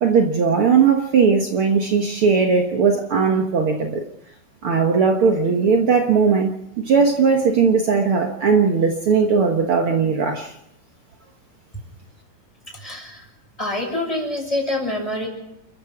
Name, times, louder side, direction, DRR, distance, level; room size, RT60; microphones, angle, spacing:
voice 1, 0.0-4.0 4.6-10.5, right 5 dB, 70° right, 3 dB, 1.3 m, -18 dB
voice 2, 12.7-13.3 13.6-15.3, left 1 dB, 10° left, 1 dB, 5.9 m, -26 dB
30.0 x 15.0 x 6.0 m, 0.82 s
omnidirectional pair, 4.7 m